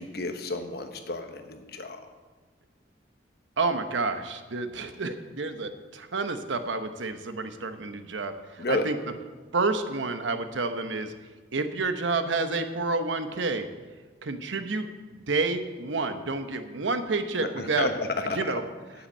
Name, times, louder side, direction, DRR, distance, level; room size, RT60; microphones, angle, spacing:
voice 1, 0.0-2.0 8.6-8.9 17.4-18.5, left 2 dB, 55° left, 6 dB, 1.1 m, -31 dB
voice 2, 3.6-9.0 9.5-11.1 11.5-13.7 14.2-17.9 18.4-18.6, right 3 dB, 85° right, 8 dB, 0.9 m, -29 dB
8.7 x 8.0 x 8.5 m, 1.4 s
head